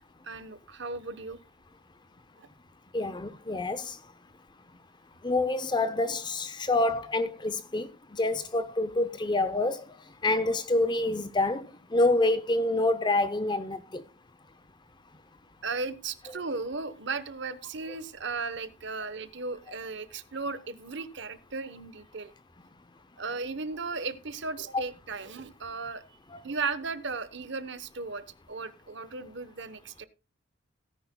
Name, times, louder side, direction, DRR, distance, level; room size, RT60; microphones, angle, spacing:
voice 1, 0.2-1.4 2.4-2.5 15.6-22.3 23.2-26.0 26.4-30.1, right 4 dB, 55° right, 0.9 m, -36 dB
voice 2, 2.9-4.0 5.2-9.8 10.2-14.0, left 2 dB, 20° left, 0.5 m, -27 dB
17.5 x 9.9 x 2.2 m
head